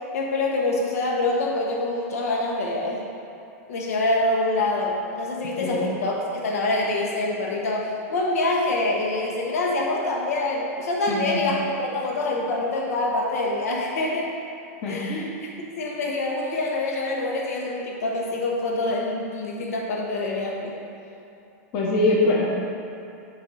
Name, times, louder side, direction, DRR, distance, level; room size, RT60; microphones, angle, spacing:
voice 1, 0.1-3.0 3.7-14.3 14.9-15.3 15.8-20.7, left 2 dB, 75° left, -2 dB, 1.5 m, -25 dB
voice 2, 5.6-5.9 11.1-11.4 14.8-15.3 21.7-22.5, left 2 dB, 30° left, -4 dB, 1.0 m, -23 dB
7.1 x 4.3 x 6.4 m, 2.7 s
supercardioid pair, 180°, 8 cm